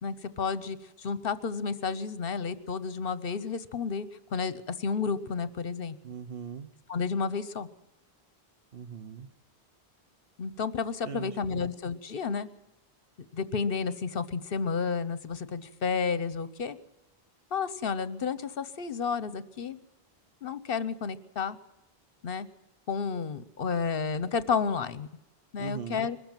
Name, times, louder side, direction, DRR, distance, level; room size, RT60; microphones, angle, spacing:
voice 1, 0.0-6.0 6.9-7.7 10.4-12.5 13.3-16.8 17.5-19.8 20.4-21.6 22.2-22.5 22.9-25.1 25.5-26.2, left 5 dB, 65° left, 14 dB, 1.1 m, -31 dB
voice 2, 6.0-6.7 8.7-9.3 11.0-11.7 25.6-26.1, right 6 dB, 65° right, 10 dB, 1.3 m, -40 dB
22.0 x 13.5 x 9.0 m, 0.96 s
omnidirectional pair, 1.0 m